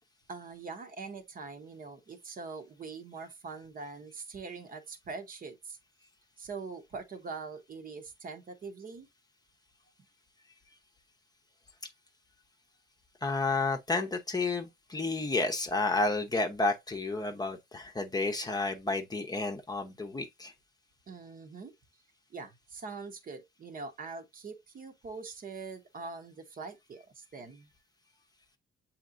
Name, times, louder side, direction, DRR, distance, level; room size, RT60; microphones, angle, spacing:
voice 1, 0.3-5.8 6.4-9.1 21.1-21.7 22.3-27.7, right 4 dB, 45° right, 0.9 m, -43 dB
voice 2, 13.2-20.5, left 3 dB, 20° left, 0.7 m, -31 dB
7.3 x 2.9 x 2.5 m
cardioid pair, 90°, 20 cm